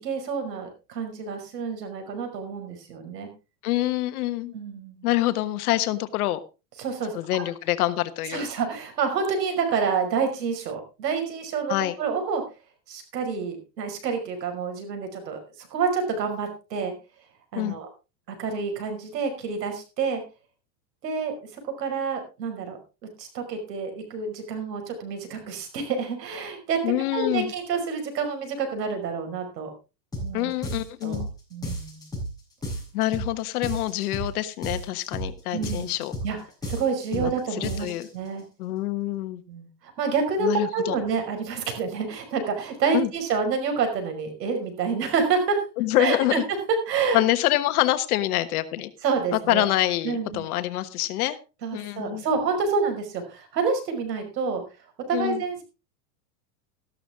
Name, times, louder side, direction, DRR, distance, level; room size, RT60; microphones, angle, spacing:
voice 1, 0.0-3.3 4.5-5.1 6.8-7.2 8.3-12.4 12.9-16.9 17.5-17.9 18.3-20.2 21.0-22.8 23.2-26.8 27.1-29.7 30.2-30.5 31.0-31.2 31.5-32.0 35.5-35.9 36.2-36.4 36.6-37.9 38.1-38.4 39.5-45.6 46.0-46.4 46.9-47.2 49.0-49.6 50.0-50.5 51.6-54.6 55.1-55.6, right 5 dB, 85° right, 5 dB, 5.7 m, -28 dB
voice 2, 3.6-4.5 5.0-6.4 7.1-8.5 11.7-12.0 17.5-17.8 26.8-27.5 30.3-31.3 32.9-36.1 37.1-38.1 38.6-39.4 40.4-41.0 42.9-43.1 45.8-46.5 47.1-48.9 49.3-51.4 51.7-52.2 55.1-55.4, left 15 dB, 65° left, 12 dB, 1.4 m, -26 dB
sound 1, 30.1-30.3 30.6-31.3 31.6-32.3 32.6-33.3 33.6-34.3 34.6-35.3 35.6-36.3 36.6-37.3 37.6-38.1, equal, 10° left, 6.9 m, -32 dB
14.0 x 12.5 x 3.7 m, 0.30 s
supercardioid pair, 140°, 48 cm